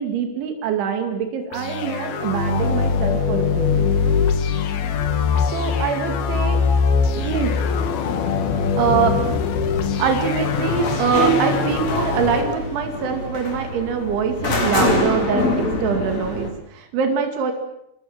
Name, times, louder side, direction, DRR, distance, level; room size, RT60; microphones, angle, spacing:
voice 1, 0.0-3.9 5.5-6.6 7.2-7.6 8.4-9.2 10.0-15.5 15.8-17.5, right 6 dB, 80° right, 5 dB, 4.8 m, -24 dB
sound 1, 1.5-12.5, left 6 dB, 60° left, 3.5 m, -22 dB
sound 2, 10.4-16.5, left 1 dB, 35° left, 5.8 m, -24 dB
26.0 x 23.5 x 7.9 m, 0.79 s
omnidirectional pair, 5.4 m